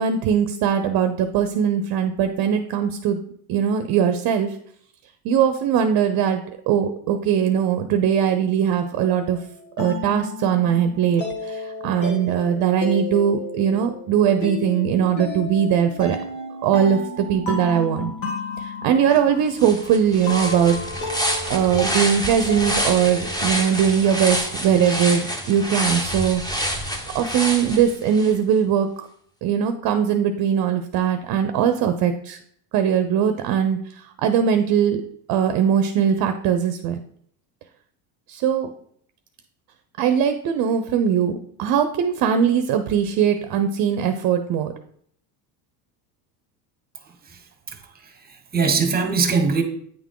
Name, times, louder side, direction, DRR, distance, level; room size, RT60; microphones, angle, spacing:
voice 1, 0.0-3.2 3.5-4.6 5.2-6.4 6.7-9.4 9.8-16.2 16.6-18.1 18.6-20.8 21.5-26.7 27.1-29.1 29.4-32.4 32.7-35.0 35.3-37.0 38.3-38.7 40.0-44.7, right 8 dB, 50° right, 8 dB, 0.7 m, -20 dB
sound 1, 8.9-23.7, left 2 dB, 70° left, 2.1 m, -33 dB
sound 2, 19.1-19.2 19.6-28.3, equal, 10° left, 0.9 m, -27 dB
voice 2, 47.7-49.6, right 5 dB, 20° right, 7 dB, 1.1 m, -22 dB
9.0 x 3.6 x 3.7 m, 0.64 s
supercardioid pair, 105°, 47 cm